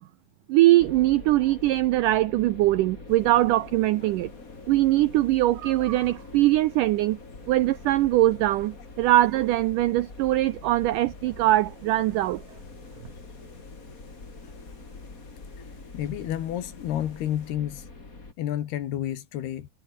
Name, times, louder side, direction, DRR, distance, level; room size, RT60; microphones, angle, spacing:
voice 1, 0.5-4.3 4.7-7.2 7.5-12.4, right 16 dB, 90° right, 1.8 m, -22 dB
sound 1, 0.8-18.3, left 3 dB, 20° left, 3.7 m, -45 dB
sound 2, 3.1-17.5, left 5 dB, 60° left, 6.4 m, -55 dB
voice 2, 15.9-17.9 18.4-19.7, left 11 dB, 75° left, 3.8 m, -30 dB
omnidirectional pair, 4.6 m